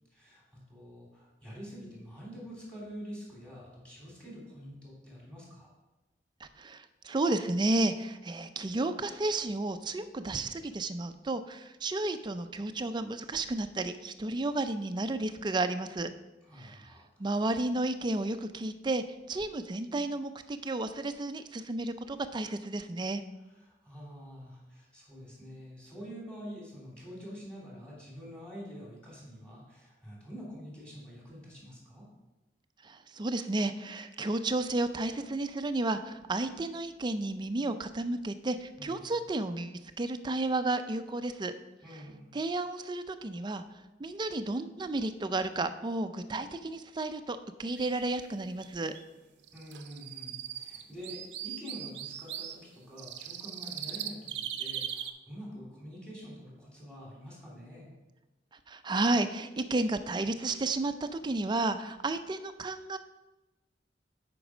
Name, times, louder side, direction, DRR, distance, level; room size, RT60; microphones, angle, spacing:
voice 1, 0.1-5.7 16.4-17.0 23.4-32.0 38.8-39.0 41.8-42.3 49.5-57.9, equal, 5° left, -5 dB, 3.1 m, -46 dB
voice 2, 6.4-16.1 16.6-16.8 17.2-23.2 32.8-41.5 42.3-43.6 44.0-48.9 58.7-63.0, right 2 dB, 25° right, 9 dB, 0.4 m, -32 dB
sound 1, 47.8-48.1 48.6-48.7 48.9-49.0 49.4-52.5 53.0-55.1, right 10 dB, 75° right, 0.6 m, -39 dB
8.2 x 5.3 x 4.9 m, 1.0 s
head